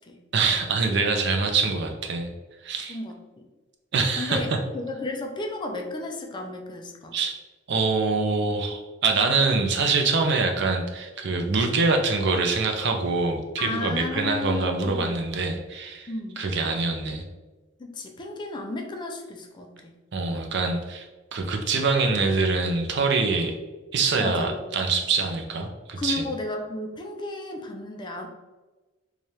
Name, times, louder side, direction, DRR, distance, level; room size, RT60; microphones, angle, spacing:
voice 1, 0.3-2.3 2.6-3.0 3.9-4.4 7.1-7.3 7.7-16.1 16.4-17.2 20.1-21.1 21.3-23.5 23.9-26.3, right 4 dB, 60° right, 4 dB, 0.5 m, -24 dB
voice 2, 2.9-3.4 4.2-7.2 13.6-15.1 16.1-16.4 17.8-19.9 24.2-24.6 26.0-28.3, left 2 dB, 25° left, 3 dB, 0.4 m, -33 dB
3.3 x 2.4 x 4.1 m, 1.2 s
head